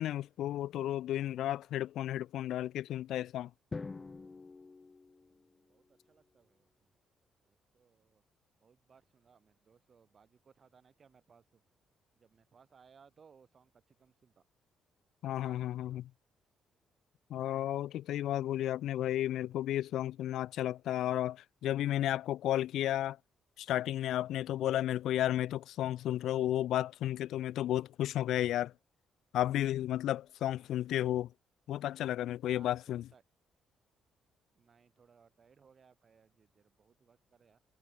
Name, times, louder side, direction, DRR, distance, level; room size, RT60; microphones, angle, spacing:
voice 1, 0.0-3.5 15.2-16.1 17.3-23.2 23.6-28.7 29.3-31.3 31.7-33.1, left 12 dB, 80° left, 0.3 m, -33 dB
Drum, 3.7-5.9, left 4 dB, 25° left, 3.8 m, -45 dB
voice 2, 5.2-6.9 7.5-8.2 8.6-11.6 12.2-14.4 15.4-16.0 30.4-30.9 32.4-33.2 34.5-37.6, right 6 dB, 45° right, 4.5 m, -65 dB
cardioid pair, 90°, 0 cm